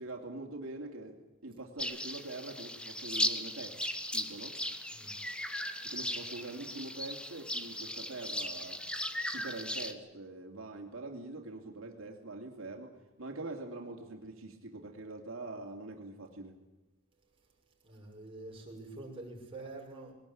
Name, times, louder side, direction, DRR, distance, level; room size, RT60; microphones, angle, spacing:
voice 1, 0.0-3.8 4.1-4.6 5.8-8.8 9.3-16.5, right 2 dB, 90° right, 1 dB, 2.7 m, -44 dB
sound 1, 1.8-9.9, left 1 dB, 5° left, 1.3 m, -37 dB
voice 2, 17.8-20.1, right 2 dB, 25° right, -1 dB, 6.0 m, -46 dB
21.0 x 18.5 x 8.6 m, 1.0 s
head